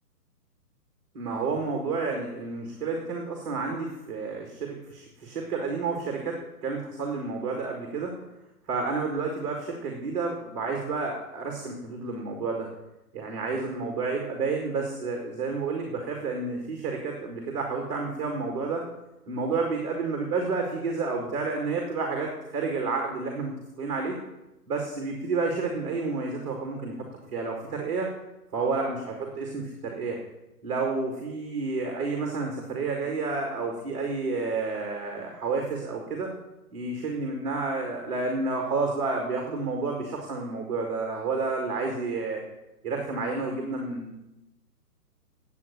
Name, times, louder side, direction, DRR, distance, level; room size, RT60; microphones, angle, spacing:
voice 1, 1.1-8.2 8.7-12.7 13.1-18.8 19.3-24.2 24.7-28.1 28.5-30.2 30.6-36.3 36.7-42.4 42.8-44.1, right 4 dB, 20° right, 1 dB, 1.7 m, -30 dB
9.6 x 8.4 x 9.5 m, 0.97 s
hypercardioid pair, 165°, 47 cm